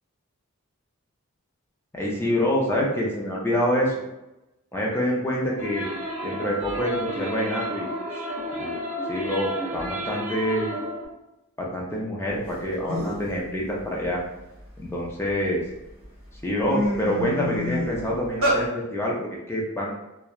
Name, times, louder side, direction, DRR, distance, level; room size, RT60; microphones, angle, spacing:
voice 1, 1.9-4.0 4.7-5.9 6.2-7.9 8.5-8.7 9.1-10.7 11.6-14.2 14.8-15.6 16.4-19.9, equal, 10° left, -3 dB, 0.4 m, -26 dB
sound 1, 5.6-11.1, equal, 35° right, 0.6 m, -32 dB
sound 2, 12.5-12.6 12.9-13.3 13.8-15.3 15.9-16.1 16.4-18.6, equal, 65° right, 0.9 m, -27 dB
2.7 x 2.1 x 2.3 m, 0.96 s
head